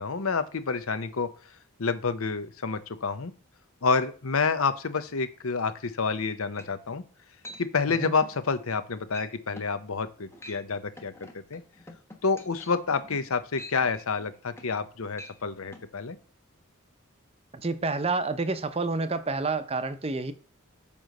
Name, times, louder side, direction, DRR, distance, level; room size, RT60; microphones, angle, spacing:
voice 1, 0.0-1.3 1.8-3.3 3.8-7.0 7.6-11.6 12.2-16.2, left 4 dB, 80° left, 0.8 m, -28 dB
sound 1, 6.2-6.3 6.6-7.0 7.4-7.6 8.0-8.4 8.7-8.9 9.1-9.3 9.6-9.8 10.2-10.6 11.0-14.9 15.1-15.4 15.7-15.9, left 1 dB, 10° left, 1.1 m, -46 dB
voice 2, 17.6-20.3, right 3 dB, 25° right, 0.6 m, -29 dB
8.8 x 3.1 x 6.5 m
head